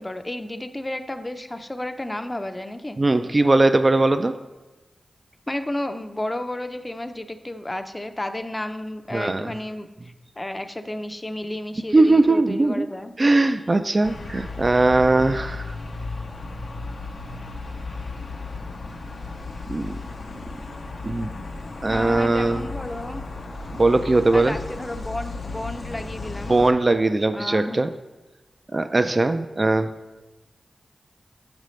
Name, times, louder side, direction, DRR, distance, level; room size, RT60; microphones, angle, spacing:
voice 1, 0.0-3.0 5.5-9.9 10.4-13.1 21.9-23.2 24.3-26.6 27.3-27.8, left 1 dB, 25° left, 8 dB, 0.5 m, -32 dB
voice 2, 3.0-4.3 9.1-9.5 11.9-12.9 13.2-15.8 19.7-20.0 21.0-21.4 21.8-22.7 23.7-24.6 26.5-27.9 28.7-29.9, right 2 dB, 45° right, 10 dB, 0.3 m, -20 dB
sound 1, 14.0-26.7, left 3 dB, 75° left, 0.6 m, -35 dB
7.4 x 5.2 x 3.1 m, 1.1 s
cardioid pair, 40°, 0 cm